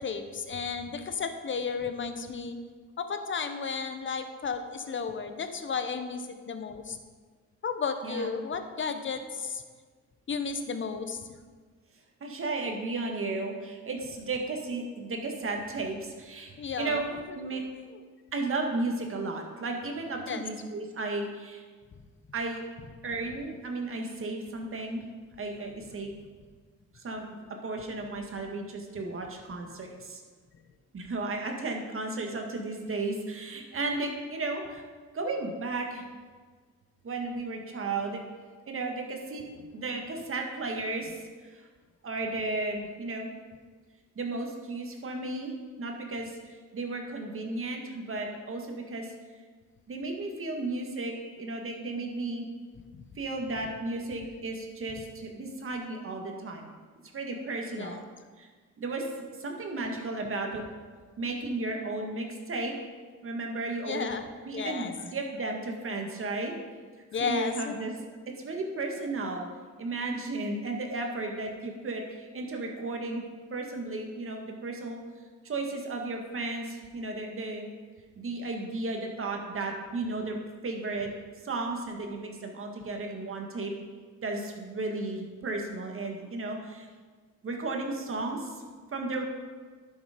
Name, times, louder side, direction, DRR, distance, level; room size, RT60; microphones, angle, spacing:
voice 1, 0.0-2.6 3.0-7.0 7.6-9.6 10.3-11.4 16.6-17.0 17.5-18.0 20.3-20.4 52.9-53.0 57.8-58.0 63.9-64.2 64.5-64.9 67.1-67.8, left 5 dB, 40° left, 8 dB, 1.1 m, -33 dB
voice 2, 8.0-8.4 12.2-17.0 17.3-17.6 18.3-21.6 22.3-22.6 23.0-25.0 25.4-26.2 27.0-27.3 27.6-30.2 30.9-34.8 35.1-36.0 37.0-38.2 38.7-39.4 39.7-41.2 41.4-41.7 42.0-43.3 44.1-49.1 49.9-52.5 53.2-56.7 57.1-58.0 58.4-58.5 58.8-59.1 59.4-60.6 61.2-62.7 63.2-64.1 64.4-66.5 67.2-67.9 68.4-69.5 69.8-73.2 73.5-75.0 75.4-77.7 78.2-80.3 80.6-81.1 81.4-83.7 84.2-86.9 87.4-88.6 88.9-89.3, right 2 dB, 45° right, 2 dB, 1.8 m, -34 dB
11.0 x 6.9 x 5.2 m, 1.5 s
cardioid pair, 90°, 30 cm